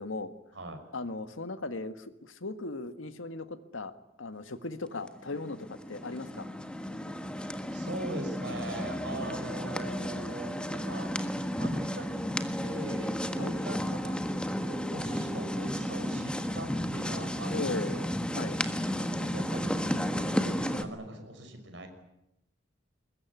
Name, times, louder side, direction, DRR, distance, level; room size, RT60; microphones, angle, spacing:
voice 1, 0.0-0.3 0.9-3.9 4.2-6.5 13.4-13.5 17.5-18.0 18.3-18.6, left 3 dB, 85° left, 11 dB, 1.6 m, -37 dB
sound 1, 5.1-20.8, equal, 5° left, 1.5 m, -33 dB
voice 2, 7.7-11.1 11.6-12.3 12.6-14.2 14.7-18.1 19.0-21.9, right 1 dB, 65° right, 5 dB, 5.9 m, -41 dB
22.0 x 21.0 x 9.7 m, 0.85 s
head